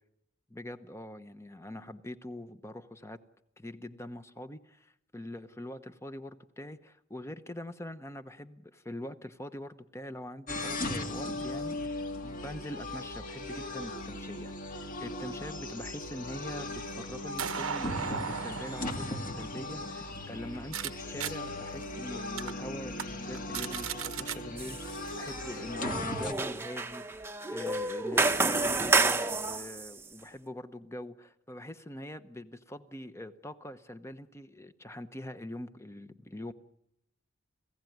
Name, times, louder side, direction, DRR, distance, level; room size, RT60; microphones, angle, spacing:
voice 1, 0.5-3.2 3.6-36.5, left 1 dB, 15° left, 11 dB, 0.9 m, -43 dB
sound 1, 10.5-26.3, left 2 dB, 40° left, 2.0 m, -38 dB
sound 2, 16.2-20.9 21.2-21.3 21.8-21.9 22.4-22.5 22.9-23.0 23.3-24.4, right 7 dB, 85° right, 1.1 m, -38 dB
sound 3, 24.6-25.0 25.3-29.9, right 3 dB, 10° right, 0.9 m, -29 dB
29.0 x 16.5 x 9.4 m, 0.84 s
head